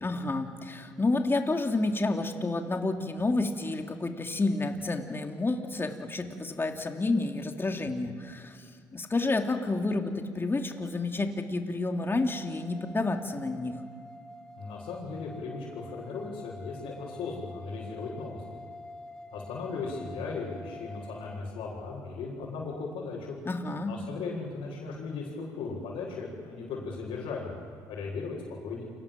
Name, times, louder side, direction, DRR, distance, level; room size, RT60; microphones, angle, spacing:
voice 1, 0.0-13.8 23.5-23.9, left 2 dB, 25° left, 4 dB, 2.9 m, -30 dB
sound 1, 12.1-21.4, left 1 dB, 5° left, 2.8 m, -47 dB
voice 2, 14.6-18.4 19.3-23.4 23.8-27.6 27.9-28.8, left 4 dB, 65° left, -6 dB, 7.2 m, -37 dB
29.0 x 25.0 x 7.7 m, 2.1 s
hypercardioid pair, 55°, 9 cm